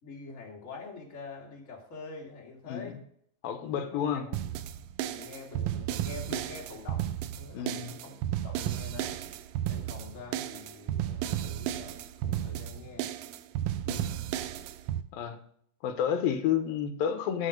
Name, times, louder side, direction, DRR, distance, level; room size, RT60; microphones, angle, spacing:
voice 1, 0.0-3.0 3.7-4.6 5.0-9.2 9.7-13.1, left 4 dB, 25° left, -2 dB, 2.3 m, -46 dB
voice 2, 3.4-4.3 7.5-7.9 13.9-14.1 15.1-15.4 15.8-17.5, left 8 dB, 85° left, 8 dB, 2.8 m, -30 dB
sound 1, 4.3-15.0, right 12 dB, 80° right, 2.2 m, -33 dB
8.6 x 8.6 x 5.1 m, 0.64 s
omnidirectional pair, 4.0 m